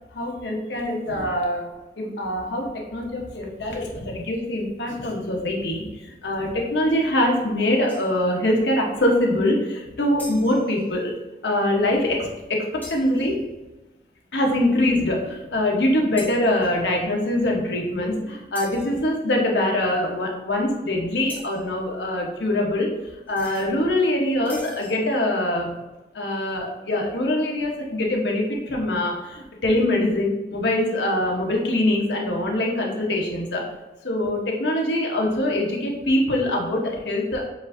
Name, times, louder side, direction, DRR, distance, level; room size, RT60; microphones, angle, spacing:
voice 1, 0.1-1.7 2.0-11.1 11.4-13.4 14.3-25.8 26.1-33.6 34.0-37.4, left 1 dB, 80° left, -1 dB, 1.0 m, -23 dB
sound 1, 7.9-8.3 10.2-10.9 12.8-13.4 16.2-16.9 18.5-19.0 21.3-21.7 23.3-23.7 24.5-25.1, left 2 dB, 10° left, 0.9 m, -42 dB
7.0 x 2.6 x 2.6 m, 1.1 s
head